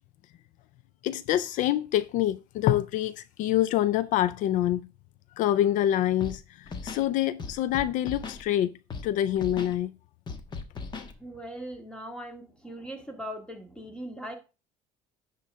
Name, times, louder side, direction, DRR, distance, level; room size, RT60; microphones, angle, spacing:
voice 1, 1.0-4.9 5.4-8.7 9.0-9.9, left 12 dB, 65° left, 0.4 m, -26 dB
Scratching (performance technique), 6.2-6.4 6.7-7.1 7.4-8.4 8.9-9.1 9.4-9.7 10.3-11.1, left 4 dB, 30° left, 1.2 m, -37 dB
voice 2, 11.2-14.4, equal, 5° left, 1.9 m, -40 dB
10.5 x 3.9 x 5.4 m
cardioid pair, 130°, 14 cm